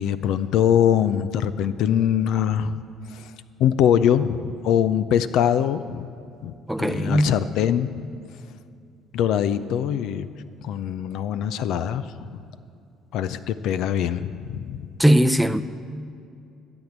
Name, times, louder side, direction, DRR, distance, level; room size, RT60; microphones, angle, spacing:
voice 1, 0.0-2.8 3.1-3.3 3.6-6.1 6.4-8.0 9.1-10.3 10.6-12.4 13.1-14.9, left 9 dB, 70° left, 0.4 m, -23 dB
voice 2, 6.7-7.4 15.0-15.6, equal, ahead, 0.6 m, -19 dB
14.0 x 8.1 x 7.3 m
hypercardioid pair, 60°, 0 cm